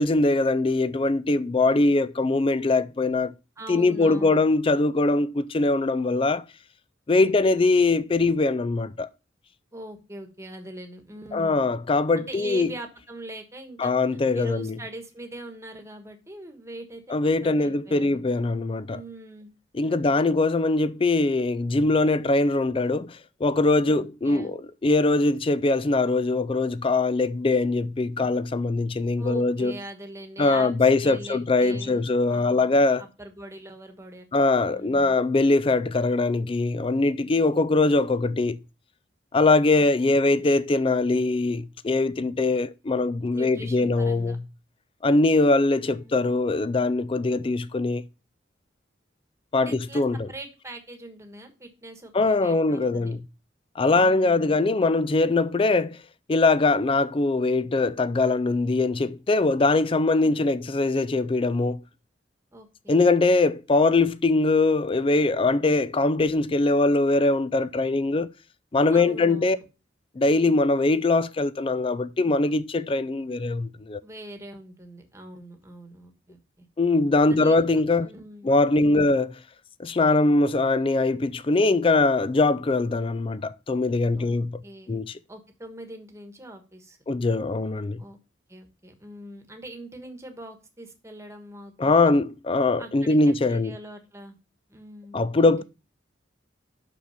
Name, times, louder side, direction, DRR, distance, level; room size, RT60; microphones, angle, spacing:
voice 1, 0.0-3.3 3.7-6.4 7.1-9.1 11.3-12.7 13.8-14.8 17.1-19.0 19.7-29.8 30.4-33.0 34.3-38.6 39.3-44.4 45.0-48.0 49.5-50.3 52.1-53.2 53.8-56.0 56.3-61.8 62.9-68.3 68.7-69.6 70.2-74.0 76.8-78.1 78.4-79.3 79.8-84.6 84.9-85.2 87.1-88.0 91.8-93.8 95.1-95.6, left 3 dB, 30° left, 0.4 m, -22 dB
voice 2, 3.6-4.4 7.2-7.6 9.7-11.7 12.1-13.9 14.3-17.1 17.4-18.2 18.9-20.4 23.9-24.5 29.2-35.2 39.8-39.9 43.3-44.4 45.7-46.3 49.6-53.1 53.9-54.6 60.2-60.6 62.5-63.1 68.9-69.6 74.0-76.7 77.3-78.5 78.8-79.1 84.2-87.0 88.0-88.2 88.5-92.1 92.8-94.3 94.7-95.6, right 1 dB, 15° right, 1.3 m, -42 dB
6.0 x 6.0 x 5.6 m
head